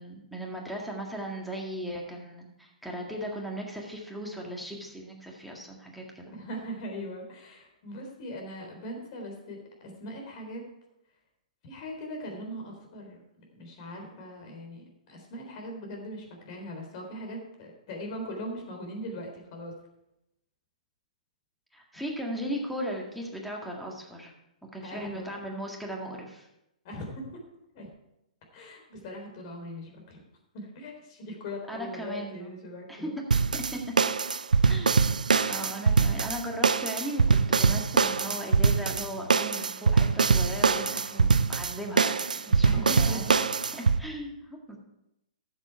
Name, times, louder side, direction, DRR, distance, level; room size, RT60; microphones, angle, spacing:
voice 1, 0.0-6.3 21.7-24.3 24.7-26.5 31.7-32.5 32.9-33.1 33.5-33.8 34.7-34.9 35.5-42.2 42.5-43.3 44.0-44.8, equal, ahead, -1 dB, 1.9 m, -37 dB
voice 2, 6.3-10.6 11.6-14.8 15.1-19.7 24.8-25.4 26.8-27.4 27.7-27.9 28.5-30.2 30.5-33.1 42.4-43.4, equal, 45° left, 2 dB, 3.7 m, -40 dB
sound 1, 33.3-44.0, right 5 dB, 90° right, 0.5 m, -23 dB
13.5 x 7.5 x 4.6 m, 0.85 s
hypercardioid pair, 130°, 4 cm